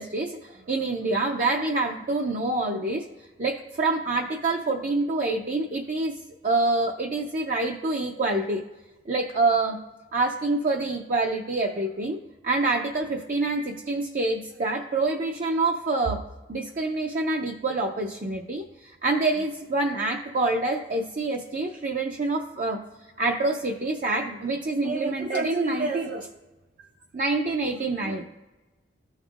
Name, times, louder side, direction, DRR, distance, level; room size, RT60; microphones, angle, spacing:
voice 1, 0.0-3.0 3.4-6.2 6.4-8.6 9.1-9.8 10.1-12.2 12.4-16.2 16.5-22.8 23.2-26.3 27.1-28.3, right 2 dB, 40° right, 1 dB, 0.5 m, -26 dB
14.5 x 5.4 x 2.4 m, 1.1 s
head